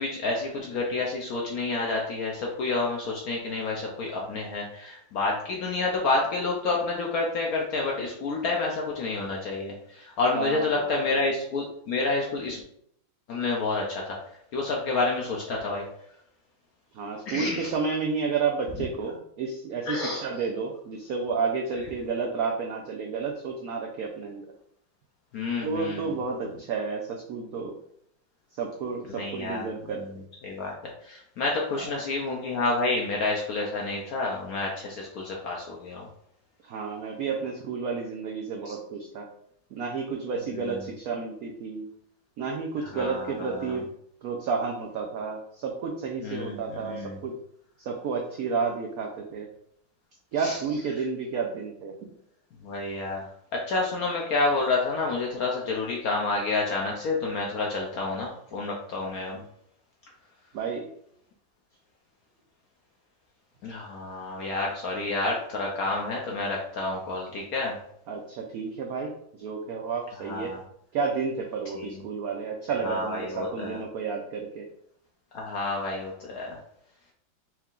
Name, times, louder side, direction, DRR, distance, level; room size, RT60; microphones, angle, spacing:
voice 1, 0.0-12.6 13.3-14.2 14.5-15.9 17.3-17.7 19.8-20.2 25.3-26.1 29.1-30.1 30.4-30.7 31.0-36.1 38.7-38.8 40.5-40.8 42.8-43.8 46.2-47.2 50.4-50.6 52.6-53.2 53.5-59.4 63.6-67.8 70.2-70.6 71.7-71.9 72.8-73.8 75.3-76.6, left 3 dB, 70° left, -1 dB, 0.8 m, -29 dB
voice 2, 10.3-11.0 16.9-24.5 25.6-27.8 28.5-30.0 31.7-32.0 36.6-39.3 39.7-41.9 42.4-43.9 44.2-47.3 47.8-49.5 50.3-51.9 60.5-60.9 68.1-70.5 70.9-74.6, right 5 dB, 80° right, 1 dB, 0.8 m, -31 dB
4.5 x 3.4 x 2.4 m, 0.70 s
omnidirectional pair, 2.1 m